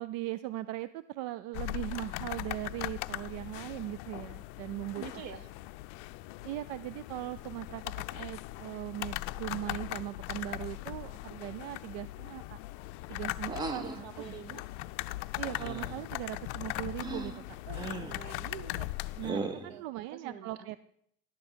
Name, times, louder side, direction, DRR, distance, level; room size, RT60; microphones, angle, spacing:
voice 1, 0.0-5.0 6.4-12.6 13.1-14.0 15.4-17.3 19.2-20.8, right 15 dB, 75° right, 15 dB, 0.5 m, -39 dB
sound 1, 1.5-19.3, left 19 dB, 75° left, 0.5 m, -40 dB
voice 2, 5.0-5.5 13.7-14.6 17.7-18.9 19.7-20.8, right 8 dB, 50° right, 14 dB, 0.9 m, -46 dB
sound 2, 13.5-14.0 15.5-16.0 17.0-17.4 17.7-18.2 19.2-19.8, right 3 dB, 15° right, 0.4 m, -37 dB
11.5 x 6.9 x 6.2 m, 0.71 s
cardioid pair, 170°, 34 cm